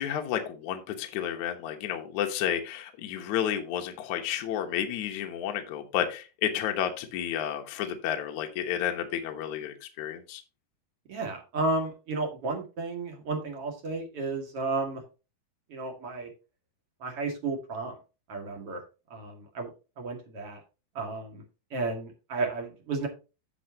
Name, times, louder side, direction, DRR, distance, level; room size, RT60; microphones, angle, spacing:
voice 1, 0.0-10.4, left 10 dB, 70° left, 4 dB, 1.8 m, -31 dB
voice 2, 11.1-15.0 15.7-16.3 17.0-17.9 18.3-18.8 19.1-19.7 20.0-20.6 20.9-21.4 21.7-23.1, right 3 dB, 40° right, 1 dB, 2.4 m, -32 dB
10.0 x 7.1 x 2.9 m, 0.30 s
omnidirectional pair, 5.1 m